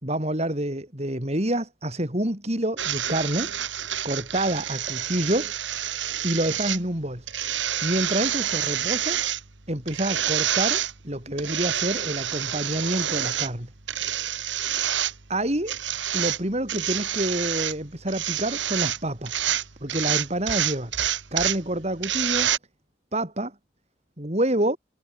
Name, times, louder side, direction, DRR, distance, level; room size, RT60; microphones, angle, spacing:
voice 1, 0.0-3.5 4.0-5.9 6.2-7.3 7.8-9.2 9.7-13.7 15.3-15.8 16.1-19.4 19.8-20.9 21.3-22.5 23.1-23.5 24.2-24.8, right 1 dB, 35° right, 3.8 m, -27 dB
sound 1, 2.8-22.6, right 11 dB, 80° right, 2.2 m, -28 dB
head